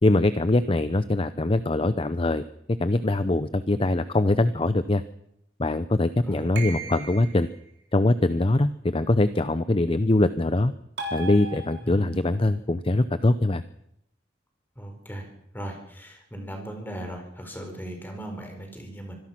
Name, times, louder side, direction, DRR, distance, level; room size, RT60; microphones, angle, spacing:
voice 1, 0.0-2.4 2.7-5.0 5.6-7.5 7.9-10.7 11.1-13.6, left 2 dB, 30° left, 13 dB, 0.7 m, -23 dB
voice 2, 6.2-7.0 11.8-12.1 14.8-15.3 15.5-19.2, right 1 dB, 10° left, 4 dB, 4.7 m, -38 dB
sound 1, 6.6-7.5 11.0-12.2, right 3 dB, 70° right, 3.8 m, -36 dB
25.0 x 17.5 x 6.0 m, 0.75 s
head